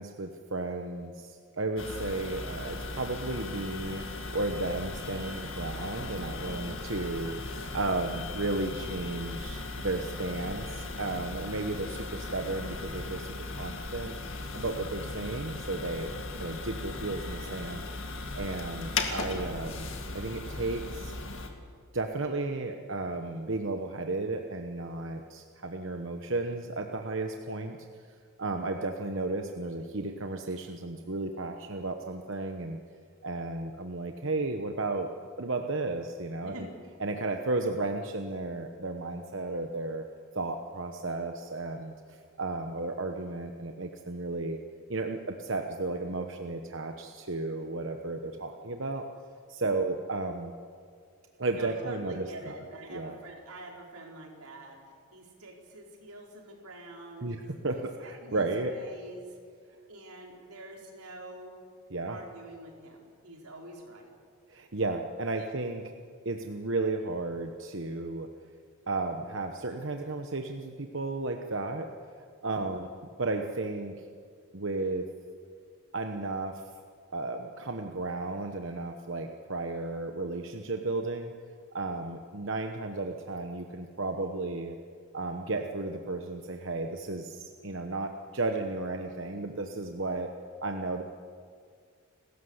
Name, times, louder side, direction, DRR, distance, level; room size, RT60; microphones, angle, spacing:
voice 1, 0.0-4.1 4.3-14.1 14.5-16.1 16.4-17.9 18.4-19.9 20.1-21.1 21.9-27.8 28.4-32.8 33.2-35.1 35.4-36.7 37.0-40.0 40.3-41.9 42.4-44.6 44.9-49.1 49.5-50.5 51.4-52.5 52.9-53.2 57.2-57.4 57.6-58.8 61.9-62.2 64.5-65.9 66.2-68.3 68.9-71.9 72.4-72.9 73.2-74.0 74.5-75.0 75.9-76.6 77.1-81.3 81.7-84.8 85.1-90.3 90.6-91.0, right 2 dB, 55° right, 4 dB, 1.1 m, -33 dB
sound 1, 1.8-21.5, left 3 dB, 60° left, 2.2 m, -37 dB
voice 2, 6.5-6.8 7.1-7.2 36.4-36.8 51.5-54.8 55.1-59.4 59.9-61.6 62.1-64.1 65.4-65.5 72.5-72.9, right 2 dB, 90° right, 0 dB, 4.8 m, -46 dB
29.5 x 13.5 x 8.2 m, 2.1 s
head